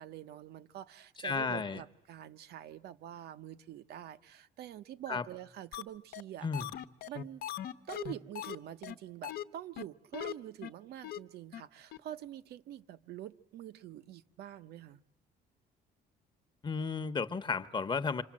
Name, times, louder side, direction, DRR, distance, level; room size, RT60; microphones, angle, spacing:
voice 1, 0.0-6.5 7.1-7.5 7.9-15.0, right 11 dB, 70° right, 1.0 m, -46 dB
voice 2, 1.2-1.8 5.1-5.2 6.4-6.7 16.6-18.2, left 5 dB, 25° left, 1.1 m, -33 dB
sound 1, 5.7-5.8 6.1-6.2 6.5-8.6 8.8-8.9 9.2-9.4 9.8-9.9 10.1-10.3 10.6-10.7 11.0-11.2 11.5-11.6 11.9-12.0, left 12 dB, 65° left, 1.1 m, -39 dB
28.0 x 26.0 x 7.5 m
cardioid pair, 110°, 17 cm